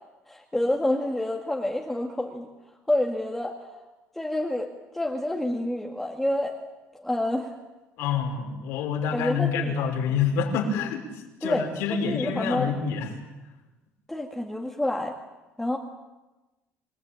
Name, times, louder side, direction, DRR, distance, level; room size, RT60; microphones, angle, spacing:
voice 1, 0.3-2.5 2.9-3.8 4.2-6.5 6.9-7.6 9.1-9.8 11.4-12.7 14.1-15.1 15.6-15.8, left 1 dB, 5° left, 0 dB, 1.9 m, -28 dB
voice 2, 8.0-11.1 11.4-13.1, left 6 dB, 80° left, 3 dB, 5.5 m, -27 dB
27.0 x 20.0 x 9.1 m, 1.1 s
cardioid pair, 165°, 4 cm